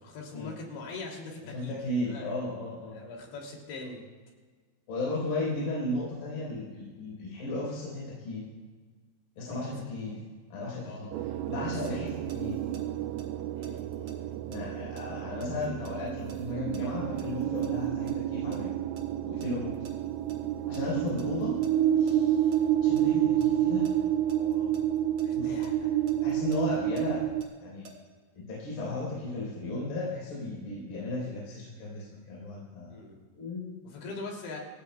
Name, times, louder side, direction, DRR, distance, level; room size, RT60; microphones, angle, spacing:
voice 1, 0.0-1.8 2.0-2.3 2.9-4.0 10.8-12.2 13.5-14.4 24.3-24.8 25.2-26.1 32.9-33.1 33.8-34.6, left 3 dB, 80° left, 0 dB, 5.1 m, -43 dB
voice 2, 1.5-3.0 4.9-8.4 9.4-10.2 10.5-11.1 11.5-12.1 12.4-12.6 14.5-18.7 19.2-19.7 20.7-21.6 22.0-22.4 22.8-23.9 25.4-25.6 26.2-27.2 27.6-27.8 28.3-32.9 33.3-33.7, left 2 dB, 60° left, -6 dB, 6.1 m, -35 dB
sound 1, 11.1-27.4, right 11 dB, 85° right, 2.7 m, -29 dB
sound 2, 11.5-12.8 13.2-17.7 18.1-19.9 20.3-20.4 20.7-22.1 22.5-23.0 23.4-25.3 25.6-27.9, right 2 dB, 50° right, 2.7 m, -50 dB
26.5 x 17.0 x 2.3 m, 1.4 s
omnidirectional pair, 5.1 m